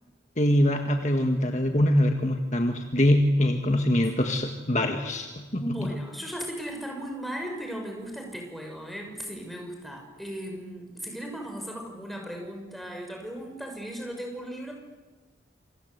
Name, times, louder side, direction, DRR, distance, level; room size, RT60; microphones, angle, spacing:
voice 1, 0.4-5.9, left 1 dB, 40° left, 4 dB, 1.7 m, -24 dB
voice 2, 5.5-14.7, equal, ahead, 1 dB, 6.0 m, -37 dB
28.0 x 26.0 x 8.2 m, 1.3 s
head